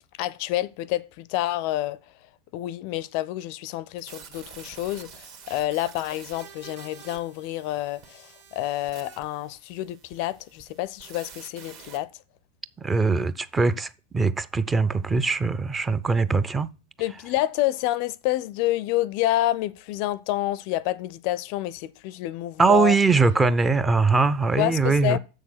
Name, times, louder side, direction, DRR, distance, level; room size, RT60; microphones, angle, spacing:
voice 1, 0.2-2.1 2.5-12.1 17.0-23.0 24.6-25.2, left 15 dB, 45° left, 0.4 m, -28 dB
sound 1, 4.0-12.0, right 7 dB, 50° right, 1.5 m, -47 dB
voice 2, 12.8-16.7 22.6-25.2, right 4 dB, 15° right, 0.5 m, -21 dB
7.0 x 6.4 x 5.9 m
figure-of-eight pair, 90°, 0 cm